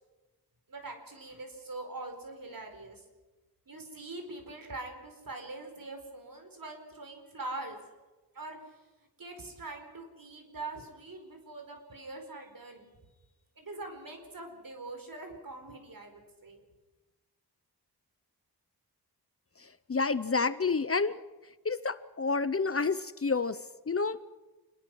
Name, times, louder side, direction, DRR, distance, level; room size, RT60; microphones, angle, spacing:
voice 1, 0.7-3.0 3.7-7.8 8.3-8.8 9.2-12.9 13.6-16.6, right 2 dB, 60° right, 5 dB, 4.8 m, -43 dB
voice 2, 19.6-21.2 21.6-24.2, left 4 dB, 35° left, 15 dB, 0.7 m, -29 dB
27.0 x 21.0 x 6.3 m, 1.2 s
wide cardioid pair, 120°, 38 cm